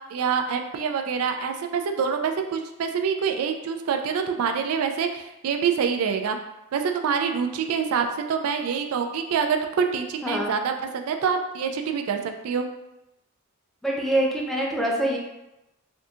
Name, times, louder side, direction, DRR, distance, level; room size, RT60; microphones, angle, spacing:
voice 1, 0.1-6.4 6.7-12.2 12.4-12.7, right 6 dB, 80° right, 6 dB, 0.3 m, -26 dB
voice 2, 10.2-10.5 13.8-15.2, right 1 dB, ahead, -3 dB, 0.5 m, -24 dB
3.5 x 2.7 x 2.4 m, 0.91 s
head